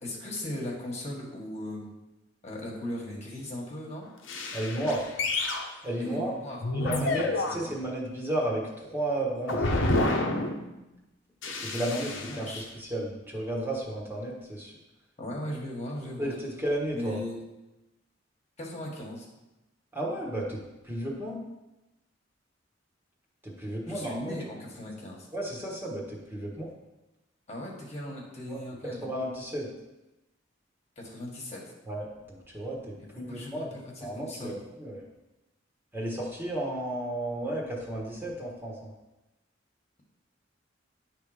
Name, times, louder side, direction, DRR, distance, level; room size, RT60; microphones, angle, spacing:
voice 1, 0.0-1.9 2.4-4.1 6.0-7.7 11.9-12.6 15.2-16.3 16.9-17.3 18.6-19.3 23.9-25.3 27.5-29.1 31.0-31.6 33.3-34.6, left 1 dB, 35° left, -2 dB, 1.5 m, -38 dB
sound 1, 4.3-5.7 6.6-7.6 9.5-10.7 11.4-12.5, left 2 dB, 80° left, 1.0 m, -29 dB
voice 2, 4.5-5.1 5.8-6.3 6.7-9.7 11.5-14.7 16.2-17.2 19.9-21.4 23.4-24.3 25.3-26.7 28.4-28.6 29.0-29.7 31.9-33.7 34.0-35.0 35.9-38.9, right 1 dB, 10° right, -4 dB, 1.3 m, -33 dB
10.0 x 3.5 x 4.9 m, 1.0 s
head